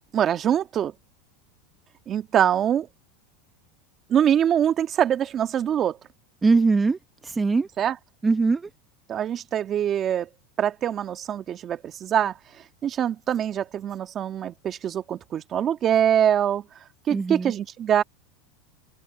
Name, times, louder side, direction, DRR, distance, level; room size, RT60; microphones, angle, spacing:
voice 1, 0.1-0.9 2.1-2.9 4.1-6.0 7.8-7.9 9.1-10.3 10.6-12.3 12.8-16.6 17.1-18.0, right 9 dB, 35° right, 2.0 m, -23 dB
voice 2, 6.4-7.7 8.2-8.7 17.1-17.5, right 4 dB, 15° right, 1.1 m, -22 dB
supercardioid pair, 125°, 0 cm